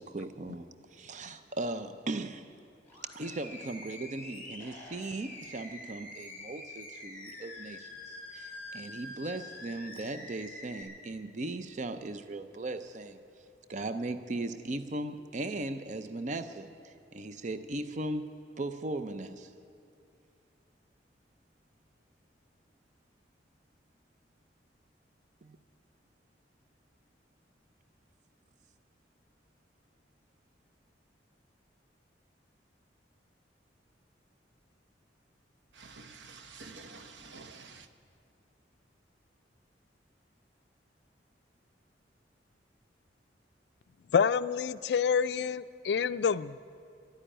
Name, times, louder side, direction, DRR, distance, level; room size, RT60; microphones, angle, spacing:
voice 1, 0.0-2.5 3.1-13.2 13.7-18.3 18.6-19.5 25.4-25.6, right 2 dB, 40° right, 0.5 m, -38 dB
Animal, 2.8-10.8, left 2 dB, 10° left, 3.5 m, -46 dB
voice 2, 35.8-37.8, right 4 dB, 80° right, 0.9 m, -49 dB
voice 3, 44.1-46.6, left 6 dB, 65° left, 0.3 m, -27 dB
12.5 x 10.0 x 10.0 m
head